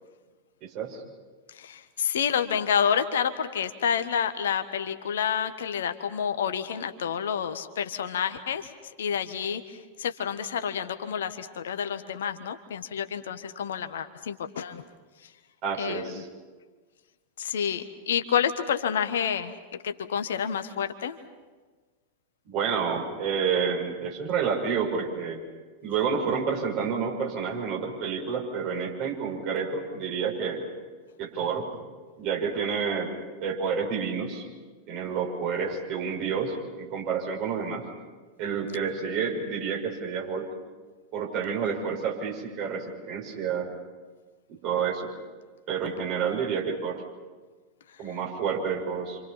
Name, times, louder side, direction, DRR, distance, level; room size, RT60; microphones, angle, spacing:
voice 1, 0.6-1.0 15.6-16.3 22.5-25.4 25.8-30.7 31.2-31.7 32.2-33.1 33.4-34.5 34.9-37.9 38.4-40.5 41.1-43.7 44.5-45.1 45.7-47.0 48.0-49.2, right 6 dB, 40° right, 0 dB, 6.2 m, -29 dB
voice 2, 1.5-14.8 15.2-15.3 15.8-16.2 17.4-19.5 19.8-21.2, left 8 dB, 60° left, 9 dB, 1.4 m, -29 dB
29.0 x 27.0 x 5.8 m, 1.4 s
figure-of-eight pair, 90°, 0 cm